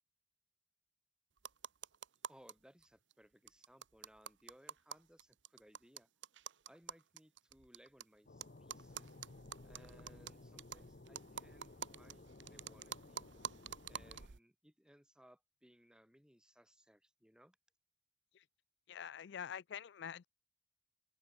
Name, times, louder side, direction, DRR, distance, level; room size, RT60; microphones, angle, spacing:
sound 1, 1.4-2.5 2.8-2.9 3.1-3.2 3.5-8.0 8.4-14.4, right 8 dB, 85° right, 0.9 m, -49 dB
voice 1, 2.3-6.1 6.7-9.2 9.6-13.3 13.9-17.6, equal, 5° right, 3.7 m, -65 dB
sound 2, 8.3-14.3, left 2 dB, 55° left, 0.9 m, -57 dB
voice 2, 18.9-20.3, left 8 dB, 70° left, 0.4 m, -46 dB
open air
head